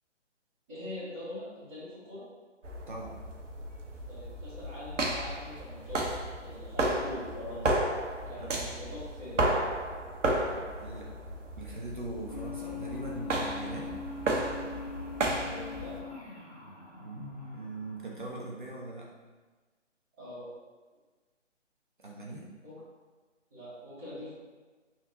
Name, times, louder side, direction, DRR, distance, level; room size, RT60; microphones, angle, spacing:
voice 1, 0.7-2.2 4.1-6.1 6.4-7.7 8.3-9.4 10.5-10.6 15.3-15.9 20.2-20.5 22.6-22.8 23.5-24.3, left 1 dB, 5° right, -20 dB, 0.7 m, -43 dB
sound 1, 2.6-16.0, right 1 dB, 80° right, 0.7 m, -33 dB
voice 2, 10.8-11.1 11.6-14.0 17.0-19.1 22.0-22.5, right 2 dB, 45° right, -3 dB, 0.5 m, -40 dB
sound 2, 12.3-18.7, left 5 dB, 30° left, 0.5 m, -43 dB
3.5 x 2.1 x 3.8 m, 1.3 s
figure-of-eight pair, 140°, 37 cm